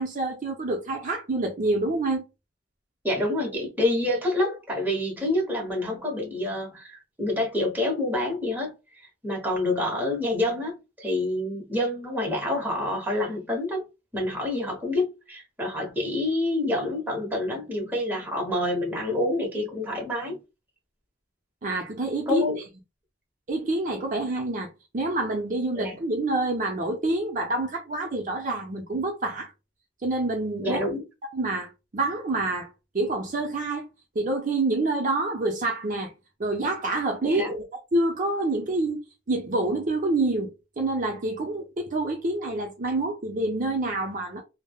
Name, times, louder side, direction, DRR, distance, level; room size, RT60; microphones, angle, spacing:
voice 1, 0.0-2.3 21.6-22.4 23.5-29.5 30.0-30.9 31.3-32.7 32.9-33.9 34.1-36.1 36.4-37.6 37.9-44.4, right 2 dB, 45° right, 0.6 m, -27 dB
voice 2, 3.0-13.8 14.1-20.4 22.3-22.6 25.8-26.0 30.6-31.0 37.2-37.5, left 1 dB, 10° right, 1.0 m, -27 dB
3.3 x 2.1 x 2.3 m
head